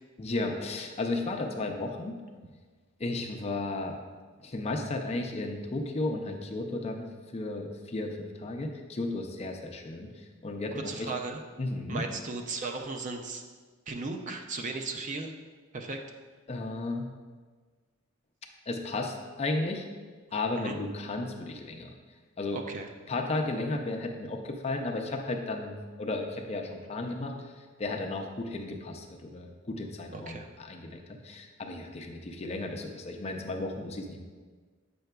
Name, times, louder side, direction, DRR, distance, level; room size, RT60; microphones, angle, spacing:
voice 1, 0.2-2.2 3.0-4.0 4.4-11.1 11.6-12.0 16.5-17.1 18.7-19.8 20.3-21.9 22.4-22.6 23.1-34.2, left 2 dB, 30° left, 3 dB, 0.5 m, -34 dB
voice 2, 10.8-11.4 11.9-13.4 13.9-15.3 15.7-16.0 20.6-20.7 22.5-22.9 30.1-30.5, right 3 dB, 35° right, 4 dB, 0.4 m, -36 dB
7.7 x 5.6 x 2.2 m, 1.4 s
head